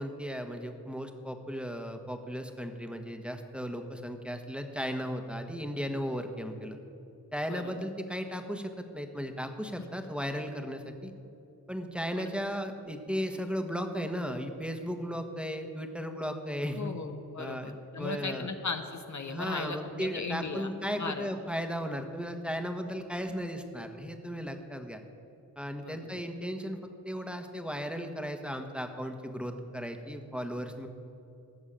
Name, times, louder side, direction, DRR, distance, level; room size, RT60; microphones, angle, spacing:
voice 1, 0.0-6.8 7.3-11.1 11.7-16.9 17.4-18.5 19.3-25.0 25.6-26.8 27.0-30.9, equal, 5° right, 5 dB, 1.5 m, -36 dB
voice 2, 7.5-7.9 9.8-9.9 12.2-12.3 16.8-20.7 21.0-21.3 25.8-26.0, left 4 dB, 50° left, 6 dB, 1.0 m, -37 dB
15.5 x 6.3 x 8.9 m, 2.7 s
supercardioid pair, 40°, 38 cm